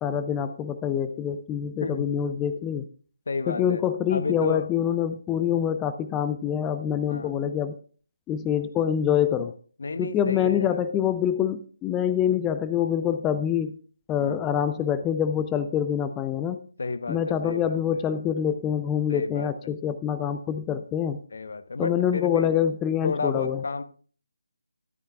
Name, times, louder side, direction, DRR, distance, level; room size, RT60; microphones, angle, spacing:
voice 1, 0.0-2.9 3.5-7.8 8.3-9.5 10.0-13.8 14.1-16.6 17.1-21.2 21.8-23.6, left 9 dB, 10° left, 0.4 m, -25 dB
voice 2, 3.3-3.8 4.1-4.7 7.1-7.4 9.8-10.9 14.2-14.4 16.8-18.1 19.1-19.7 21.3-22.5 23.0-23.8, left 4 dB, 55° left, 0.9 m, -32 dB
13.5 x 11.5 x 2.4 m
figure-of-eight pair, 150°, 0 cm